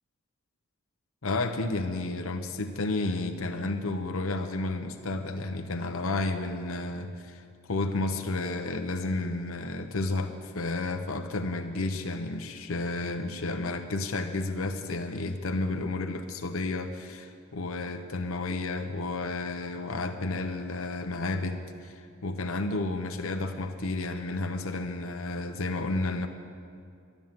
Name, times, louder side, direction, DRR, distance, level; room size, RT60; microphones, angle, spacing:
voice 1, 1.2-26.3, left 2 dB, 70° left, 5 dB, 0.8 m, -31 dB
12.5 x 11.0 x 7.5 m, 2.5 s
head